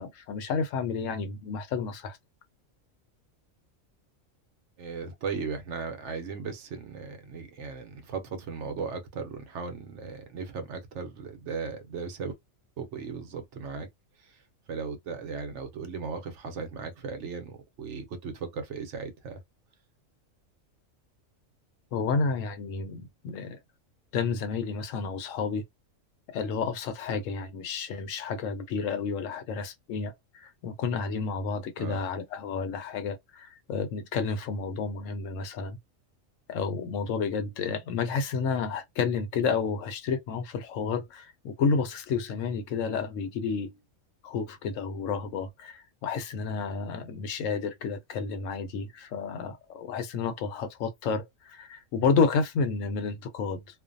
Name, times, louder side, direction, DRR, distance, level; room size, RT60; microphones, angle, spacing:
voice 1, 0.0-2.2 21.9-23.6 24.1-25.6 26.3-35.8 36.5-43.7 44.2-53.6, left 5 dB, 75° left, 0.9 m, -30 dB
voice 2, 4.8-12.3 12.8-13.9 14.2-14.4 14.7-19.4 31.8-32.0, right 5 dB, 65° right, 0.9 m, -37 dB
2.5 x 2.1 x 2.5 m
omnidirectional pair, 1.4 m